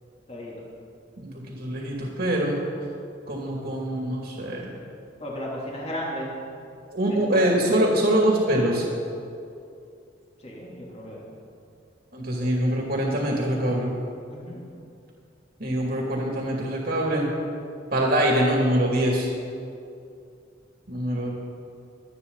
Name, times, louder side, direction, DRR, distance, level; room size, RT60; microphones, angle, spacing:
voice 1, 1.2-2.6 3.3-4.7 6.9-8.9 12.1-13.9 15.6-17.3 17.9-19.3 20.9-21.3, right 1 dB, 55° right, -2 dB, 2.7 m, -24 dB
voice 2, 5.2-6.3 7.1-7.4 10.4-11.4 14.3-14.6, equal, 35° left, -5 dB, 3.3 m, -35 dB
25.0 x 9.5 x 4.1 m, 2.5 s
head